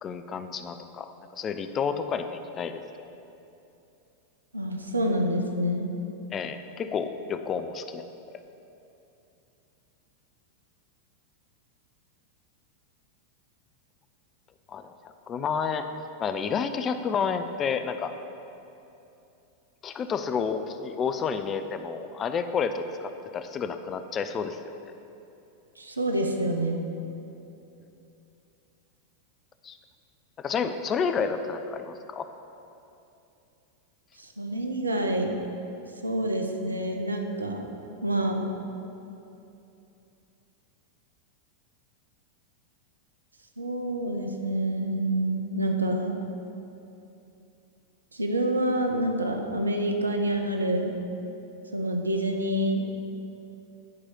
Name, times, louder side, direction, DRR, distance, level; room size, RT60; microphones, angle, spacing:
voice 1, 0.0-2.8 6.3-8.1 14.7-15.9 16.2-18.1 19.8-24.6 29.6-29.8 30.4-32.3, left 6 dB, 30° left, 9 dB, 0.5 m, -30 dB
voice 2, 4.5-5.9 25.8-26.8 34.2-35.4 36.0-37.7 38.0-38.5 43.6-46.2 48.1-51.0 51.7-53.1, right 1 dB, 85° right, 4 dB, 0.7 m, -27 dB
9.8 x 4.8 x 5.6 m, 2.8 s
figure-of-eight pair, 90°, 0 cm